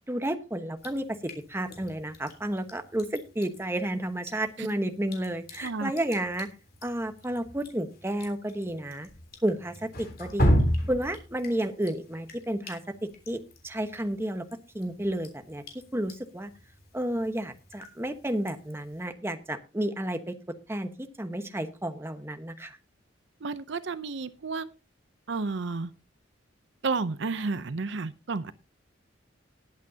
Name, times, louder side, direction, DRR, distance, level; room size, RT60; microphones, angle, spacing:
voice 1, 0.1-1.2 1.5-6.5 6.8-9.1 9.4-10.5 10.9-14.4 14.7-15.6 15.9-16.5 16.9-20.4 20.7-22.8, right 1 dB, 15° right, 7 dB, 1.1 m, -31 dB
Drip, 0.8-19.1, equal, 50° left, 3.3 m, -35 dB
voice 2, 23.4-24.7 25.3-25.9 26.8-28.5, right 4 dB, 65° right, 14 dB, 0.6 m, -31 dB
19.5 x 8.4 x 2.8 m, 0.30 s
head